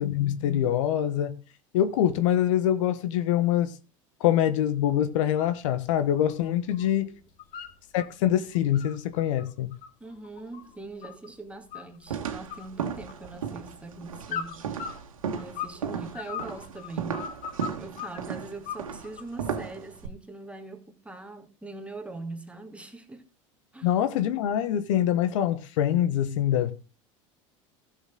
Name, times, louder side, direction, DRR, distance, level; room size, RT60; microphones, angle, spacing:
voice 1, 0.0-1.3 1.7-3.7 4.2-7.1 7.9-9.7 23.8-26.7, left 11 dB, 70° left, 1.2 m, -24 dB
sound 1, 5.2-5.6 5.9-6.9 7.2-8.1 8.5-11.3 11.7-12.2 12.5-13.5 14.3-15.8 16.1-18.2 18.6-19.4, left 7 dB, 55° left, 2.4 m, -39 dB
voice 2, 10.0-14.9 15.4-17.3 17.8-23.2 23.7-23.9, right 3 dB, 5° right, 2.4 m, -42 dB
sound 2, 12.1-20.1, right 7 dB, 85° right, 1.6 m, -35 dB
16.0 x 7.2 x 3.8 m
hypercardioid pair, 80°, 17 cm